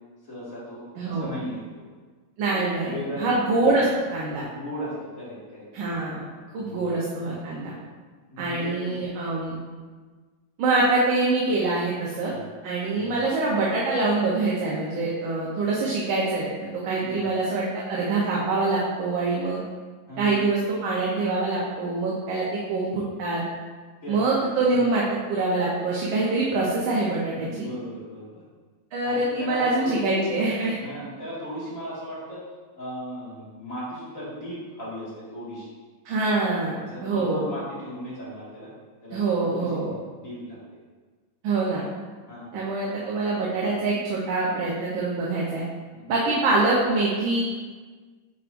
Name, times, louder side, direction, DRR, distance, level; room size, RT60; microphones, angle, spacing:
voice 1, 0.3-1.9 2.5-3.3 4.5-5.6 6.6-7.0 7.2-7.3 8.3-9.0 12.3-12.5 12.9-13.1 17.0-17.3 20.1-20.4 24.0-24.3 24.7-24.8 27.3-28.4 29.0-30.1 30.8-32.4 32.8-35.7 36.9-38.7 39.0-39.8 40.2-40.6 42.3-42.5 45.9-46.5, equal, 40° left, -8 dB, 2.3 m, -37 dB
voice 2, 1.0-1.4 2.4-4.4 5.7-6.3 6.5-7.7 8.4-9.6 10.6-12.3 12.6-16.5 16.8-19.6 20.2-23.4 24.1-27.7 28.9-30.8 36.1-36.8 37.0-37.5 39.1-40.0 41.4-41.9 42.5-45.6 46.1-47.4, right 3 dB, 80° right, -5 dB, 1.7 m, -25 dB
9.3 x 4.6 x 2.6 m, 1.4 s
omnidirectional pair, 2.2 m